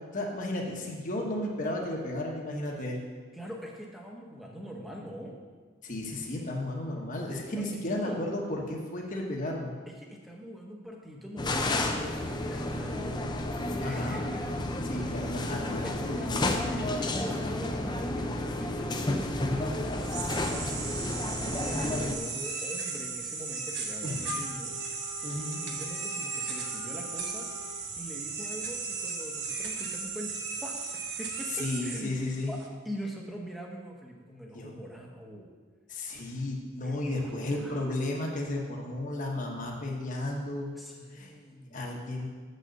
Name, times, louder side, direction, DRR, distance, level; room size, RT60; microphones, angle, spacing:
voice 1, 0.1-3.0 5.8-9.7 13.8-14.2 14.8-16.9 24.0-24.4 25.2-25.6 31.6-32.5 34.5-34.7 35.9-40.7 41.1-41.3 41.7-42.3, left 1 dB, 35° left, -1 dB, 1.2 m, -34 dB
voice 2, 3.3-5.4 7.5-8.2 9.9-13.2 13.8-15.3 15.8-20.7 21.5-24.8 25.4-27.5 28.0-32.1 32.5-35.5 36.8-38.1 40.7-41.8, equal, ahead, -1 dB, 1.1 m, -43 dB
sound 1, 11.4-22.2, left 1 dB, 20° left, 0.6 m, -31 dB
sound 2, 19.8-32.7, right 5 dB, 50° right, 1.1 m, -36 dB
Wind instrument woodwind instrument, 24.2-27.9, left 4 dB, 85° left, 0.6 m, -45 dB
7.5 x 6.5 x 6.6 m, 1.5 s
head